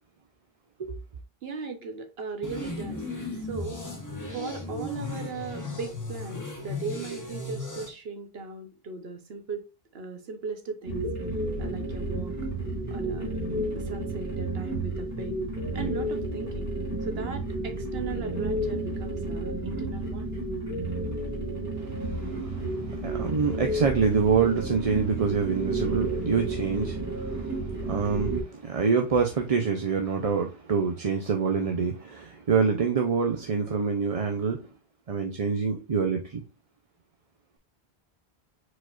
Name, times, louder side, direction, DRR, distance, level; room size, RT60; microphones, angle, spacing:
voice 1, 1.4-3.1 3.4-3.8 4.3-9.6 9.9-11.1 11.6-12.4 12.9-13.3 13.7-15.4 15.7-16.7 17.0-20.3, right 4 dB, 75° right, 1.1 m, -37 dB
sound 1, 2.4-7.9, left 2 dB, 20° left, 1.0 m, -36 dB
sound 2, 10.8-28.4, right 2 dB, 15° right, 2.0 m, -31 dB
voice 2, 21.8-34.6 35.1-36.4, right 5 dB, 45° right, 0.6 m, -26 dB
4.8 x 4.2 x 2.4 m
omnidirectional pair, 1.0 m